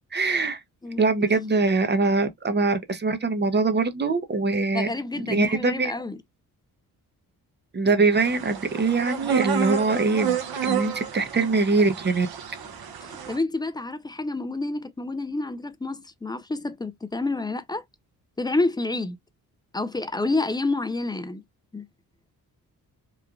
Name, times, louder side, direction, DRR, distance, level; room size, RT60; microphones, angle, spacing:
voice 1, 0.1-0.6 1.0-4.9 5.1-5.9 7.7-10.4 10.6-12.3, right 3 dB, 25° right, 0.7 m, -23 dB
voice 2, 0.8-1.4 4.7-6.2 13.0-17.8 18.4-19.2 19.7-21.4 21.7-21.9, left 2 dB, 10° left, 0.3 m, -29 dB
sound 1, 8.1-13.4, right 8 dB, 70° right, 0.9 m, -30 dB
3.1 x 2.1 x 2.4 m
cardioid pair, 70°, 39 cm